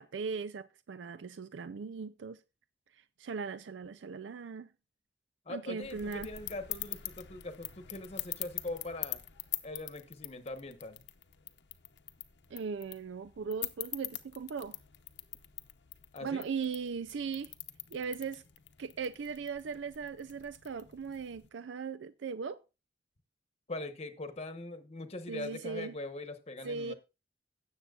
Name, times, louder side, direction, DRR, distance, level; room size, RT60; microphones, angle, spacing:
voice 1, 0.0-2.4 2.9-4.7 5.5-6.3 12.5-14.8 16.2-17.5 17.9-18.4 18.8-22.6 25.3-25.9 26.6-26.9, right 5 dB, 85° right, 0.4 m, -38 dB
voice 2, 5.5-9.2 9.6-11.0 16.1-16.5 23.7-26.9, left 2 dB, 35° left, 1.1 m, -42 dB
sound 1, 5.8-21.5, left 14 dB, 70° left, 0.8 m, -44 dB
17.0 x 7.4 x 2.4 m
head